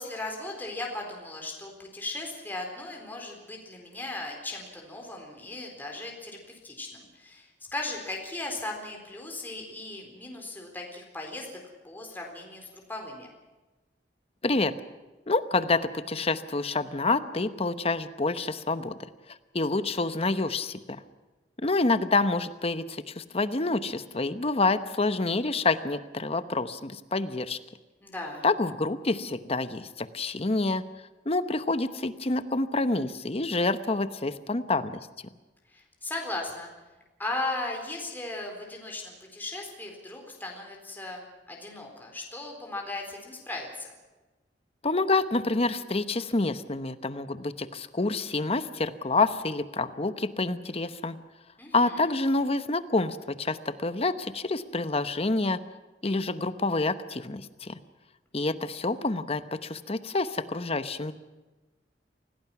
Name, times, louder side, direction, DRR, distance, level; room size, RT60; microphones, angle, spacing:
voice 1, 0.0-11.5 11.8-13.3 28.0-28.4 35.7-36.7 37.2-43.9 51.6-52.1, left 2 dB, 10° left, 0 dB, 4.1 m, -37 dB
voice 2, 14.4-14.7 15.3-19.0 19.3-20.8 21.6-27.6 28.4-30.8 31.2-34.9 44.8-51.2 51.7-55.6 56.0-57.8 58.3-61.1, left 3 dB, 35° left, 12 dB, 1.0 m, -27 dB
26.5 x 18.0 x 6.1 m, 1.2 s
head